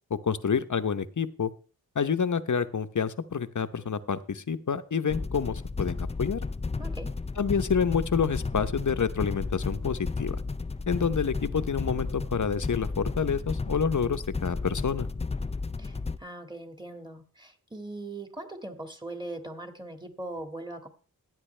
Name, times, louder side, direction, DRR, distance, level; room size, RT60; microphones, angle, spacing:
voice 1, 0.1-1.5 1.9-6.4 7.4-10.4 10.9-15.1, left 6 dB, 50° left, 12 dB, 0.9 m, -28 dB
sound 1, 5.1-16.2, left 3 dB, 15° left, 0.5 m, -33 dB
voice 2, 6.8-7.2 15.8-20.9, right 2 dB, 10° right, 6 dB, 2.0 m, -40 dB
15.5 x 9.4 x 3.3 m, 0.38 s
cardioid pair, 55°, 37 cm